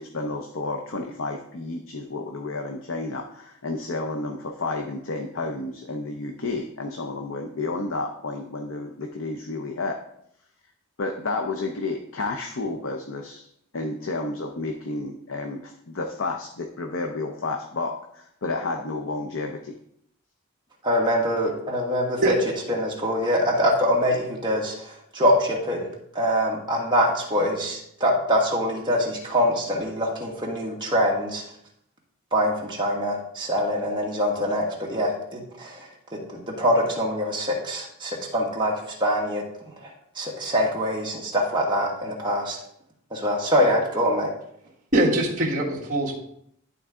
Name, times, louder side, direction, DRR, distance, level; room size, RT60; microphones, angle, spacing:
voice 1, 0.0-10.0 11.0-13.5 13.7-19.7, left 3 dB, 60° left, 4 dB, 0.6 m, -31 dB
voice 2, 20.8-22.3 22.7-25.9 26.1-31.4 32.3-38.7 39.0-39.4 39.8-42.6 43.1-44.3, equal, 20° right, -2 dB, 1.5 m, -24 dB
voice 3, 44.9-46.1, right 1 dB, 35° right, -6 dB, 1.6 m, -22 dB
11.0 x 4.0 x 3.6 m, 0.73 s
head